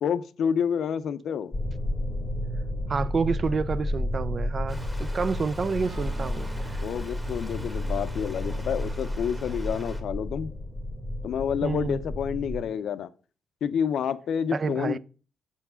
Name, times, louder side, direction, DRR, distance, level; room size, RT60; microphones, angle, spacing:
voice 1, 0.0-1.5 6.8-10.5 11.2-13.1 13.6-15.0, left 8 dB, 75° left, 0.5 m, -29 dB
sound 1, 1.5-12.7, left 1 dB, 20° left, 0.9 m, -32 dB
voice 2, 2.9-6.8 11.6-12.0 14.5-15.0, right 4 dB, 40° right, 0.4 m, -29 dB
Stream, 4.7-10.0, equal, 5° right, 1.2 m, -45 dB
Acoustic guitar / Strum, 5.8-10.0, right 6 dB, 75° right, 0.9 m, -51 dB
7.1 x 4.5 x 5.5 m
cardioid pair, 135°, 0 cm